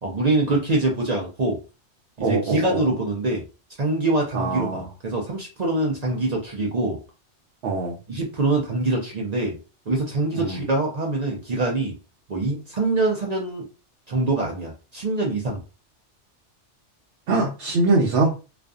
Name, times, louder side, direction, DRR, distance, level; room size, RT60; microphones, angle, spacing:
voice 1, 0.0-1.6 2.2-3.4 3.8-7.0 8.1-9.6 9.9-12.0 12.3-13.7 14.1-15.6, right 2 dB, 50° right, 0.5 m, -24 dB
voice 2, 2.2-2.8 4.3-4.9 7.6-8.0 10.3-10.6 17.3-18.3, right 3 dB, 70° right, 0.9 m, -23 dB
2.5 x 2.4 x 2.3 m
omnidirectional pair, 1.2 m